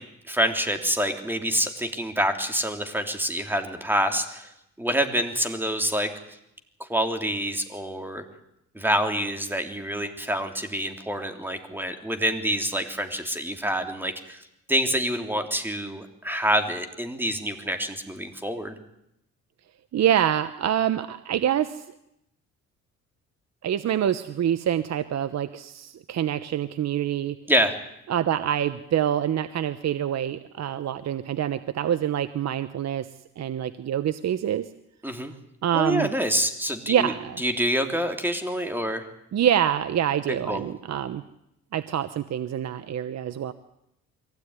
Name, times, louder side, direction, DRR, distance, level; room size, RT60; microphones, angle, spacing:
voice 1, 0.3-4.5 4.8-6.1 6.9-8.2 8.7-14.4 14.7-18.7 27.5-27.8 35.0-35.3 35.7-37.1 37.4-39.1 40.5-40.6, equal, 5° right, 6 dB, 3.4 m, -26 dB
voice 2, 19.9-21.8 23.6-27.4 28.1-33.1 33.4-34.7 35.6-36.1 36.9-37.4 39.3-41.2 41.7-43.5, right 10 dB, 60° right, 12 dB, 1.1 m, -26 dB
23.0 x 17.0 x 9.8 m, 0.81 s
cardioid pair, 90°, 30 cm